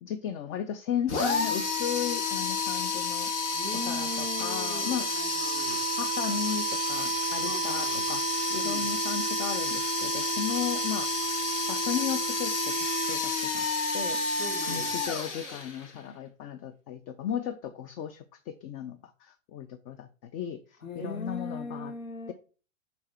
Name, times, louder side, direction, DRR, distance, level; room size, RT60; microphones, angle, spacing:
voice 1, 0.0-3.3 3.7-5.1 5.7-11.1 11.7-13.7 13.9-14.4 14.7-21.9 22.3-22.4, left 9 dB, 30° left, 0.6 m, -35 dB
sound 1, 1.1-16.0, left 1 dB, 60° left, 2.4 m, -30 dB
voice 2, 3.5-5.8 7.4-8.0 8.5-8.9 14.4-14.9 20.8-22.3, left 2 dB, 75° left, 2.2 m, -39 dB
6.5 x 4.1 x 5.8 m
hypercardioid pair, 105°, 40 cm